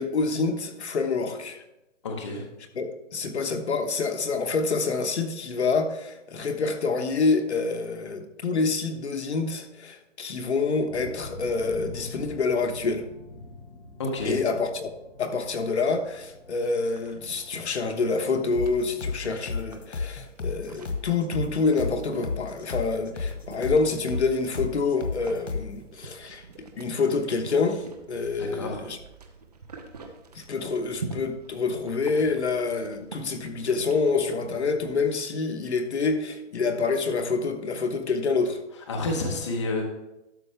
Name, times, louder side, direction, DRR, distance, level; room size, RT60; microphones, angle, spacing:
voice 1, 0.0-1.6 2.7-13.0 14.2-14.9 15.2-26.4 26.8-29.0 30.3-38.6, left 4 dB, 65° left, 6 dB, 1.2 m, -27 dB
voice 2, 2.0-2.4 14.0-14.4 28.4-28.8 38.9-39.8, left 2 dB, 25° left, 1 dB, 0.9 m, -29 dB
sound 1, 10.9-19.1, left 2 dB, 45° left, 3.7 m, -46 dB
sound 2, 16.7-34.9, right 4 dB, 35° right, 0.8 m, -45 dB
sound 3, 18.5-25.8, left 4 dB, 85° left, 1.7 m, -33 dB
12.0 x 6.5 x 3.4 m, 0.94 s
hypercardioid pair, 170°, 36 cm